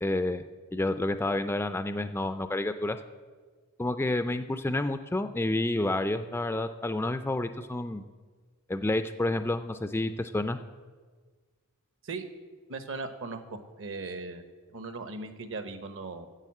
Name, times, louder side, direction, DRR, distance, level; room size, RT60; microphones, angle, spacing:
voice 1, 0.0-0.4 0.7-3.0 3.8-8.0 8.7-10.6, left 2 dB, 10° left, 9 dB, 0.3 m, -29 dB
voice 2, 12.7-14.4 14.7-16.3, right 3 dB, 60° right, 9 dB, 0.9 m, -38 dB
10.5 x 7.8 x 7.4 m, 1.5 s
head